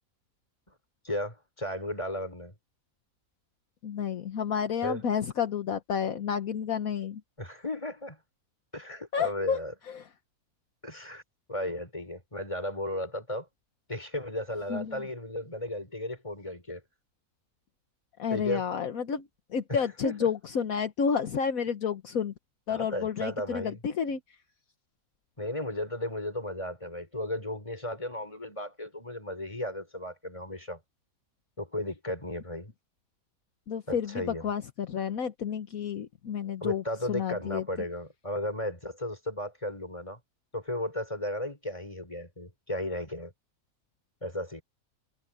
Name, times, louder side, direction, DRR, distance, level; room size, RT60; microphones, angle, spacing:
voice 1, 1.0-2.5 4.8-5.0 7.4-8.2 8.7-9.7 10.8-11.2 11.5-13.5 13.9-16.8 18.3-18.6 19.7-20.3 22.7-23.8 25.4-30.8 31.6-32.7 33.9-34.5 36.6-40.2 40.5-43.3 44.2-44.6, left 1 dB, 20° left, 5.0 m, -35 dB
voice 2, 3.8-7.2 9.1-9.6 9.9-10.0 14.7-15.0 18.2-19.2 19.5-22.3 22.7-24.2 33.7-36.8 37.1-37.6, left 7 dB, 70° left, 1.5 m, -30 dB
omnidirectional pair, 1.6 m